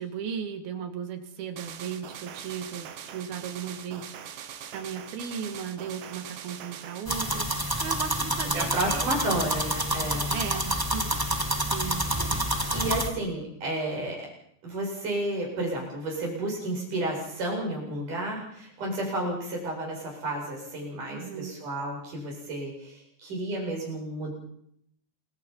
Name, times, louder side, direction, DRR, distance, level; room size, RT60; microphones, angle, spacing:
voice 1, 0.0-9.1 10.1-11.1 11.7-12.0 21.1-21.6, right 7 dB, 65° right, 7 dB, 4.1 m, -36 dB
sound 1, 1.6-7.1, right 9 dB, 85° right, 3.9 m, -42 dB
sound 2, 7.0-13.1, right 1 dB, 15° right, 0.8 m, -28 dB
voice 2, 8.5-10.3 12.7-14.3 14.6-24.3, right 1 dB, 45° right, -1 dB, 9.4 m, -31 dB
28.0 x 24.5 x 5.8 m, 0.73 s
omnidirectional pair, 4.9 m